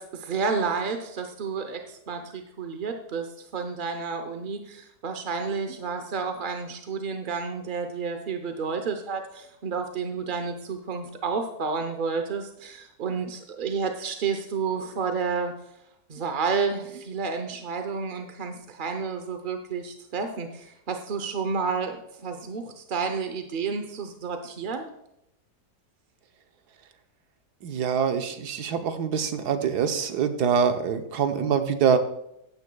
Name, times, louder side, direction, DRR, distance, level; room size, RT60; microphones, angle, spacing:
voice 1, 0.0-15.5 16.1-25.0, right 5 dB, 50° right, 6 dB, 0.6 m, -30 dB
voice 2, 27.6-32.0, right 7 dB, 75° right, 7 dB, 1.4 m, -24 dB
14.5 x 9.5 x 2.3 m, 0.80 s
omnidirectional pair, 1.8 m